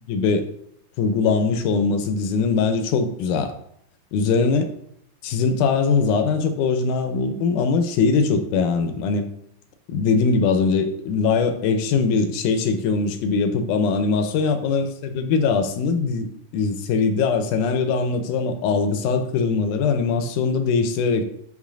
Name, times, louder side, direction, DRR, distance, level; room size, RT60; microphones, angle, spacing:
voice 1, 0.1-0.5 1.0-3.5 4.1-4.7 5.2-9.3 9.9-21.2, left 4 dB, 80° left, 7 dB, 2.0 m, -21 dB
10.5 x 3.9 x 2.5 m, 0.71 s
omnidirectional pair, 3.8 m